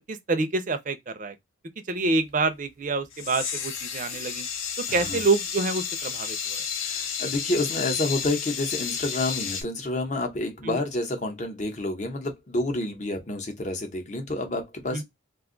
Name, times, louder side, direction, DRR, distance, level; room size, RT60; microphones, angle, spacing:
voice 1, 0.0-1.3 1.9-4.5 4.9-6.6 10.6-10.8 14.9-15.0, right 3 dB, 40° right, 0.5 m, -27 dB
sound 1, 3.1-9.6, left 7 dB, 85° left, 0.8 m, -32 dB
voice 2, 4.9-5.2 6.8-15.0, left 2 dB, 35° left, 0.8 m, -29 dB
2.5 x 2.3 x 3.7 m
head